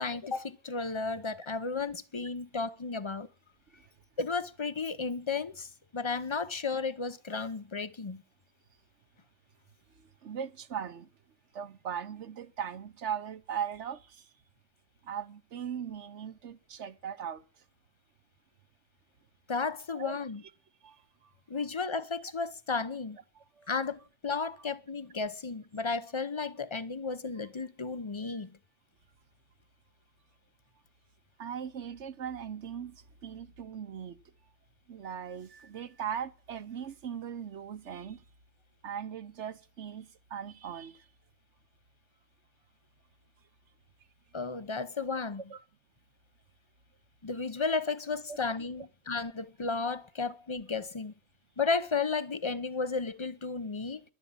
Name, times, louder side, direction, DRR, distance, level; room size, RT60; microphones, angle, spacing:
voice 1, 0.0-3.3 4.2-5.7 5.9-8.2 19.5-20.4 21.5-23.2 23.7-28.6 44.3-45.4 47.2-51.1 51.6-54.0, left 4 dB, 30° left, 0.6 m, -33 dB
voice 2, 10.0-11.1 11.5-14.3 15.0-17.4 19.9-20.2 20.8-21.3 23.3-23.7 31.4-34.2 34.9-38.2 38.8-41.1 45.5-45.6 48.3-48.4, right 8 dB, 65° right, 1.2 m, -39 dB
11.5 x 11.0 x 8.8 m
omnidirectional pair, 1.3 m